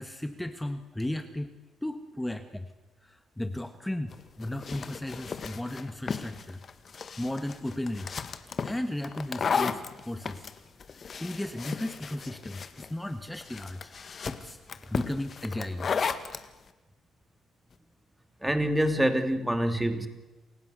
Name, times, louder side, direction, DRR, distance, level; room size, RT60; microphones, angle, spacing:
voice 1, 0.0-2.7 3.0-6.6 6.9-8.1 8.6-10.5 11.2-13.9 14.3-14.6 14.9-15.9, left 1 dB, 10° left, 9 dB, 1.4 m, -35 dB
sound 1, 4.1-16.5, left 6 dB, 45° left, 1.7 m, -35 dB
voice 2, 18.4-20.1, right 1 dB, 5° right, 8 dB, 2.7 m, -26 dB
28.5 x 16.0 x 8.2 m, 1.1 s
cardioid pair, 90°, 0 cm